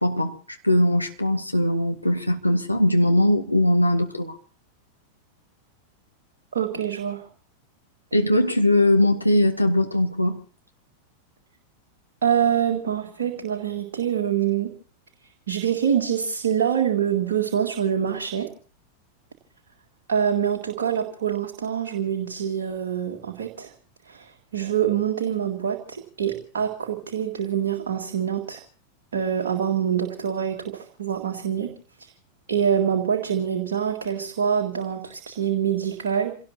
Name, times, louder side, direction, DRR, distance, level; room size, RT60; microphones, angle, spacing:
voice 1, 0.0-4.4 8.1-10.4, left 1 dB, 85° left, 1.9 m, -20 dB
voice 2, 6.5-7.3 12.2-14.7 15.5-18.5 20.1-23.7 24.1-28.6 29.1-31.7 32.5-36.4, right 8 dB, 65° right, 2.0 m, -25 dB
28.0 x 17.5 x 2.9 m
figure-of-eight pair, 90°, 0 cm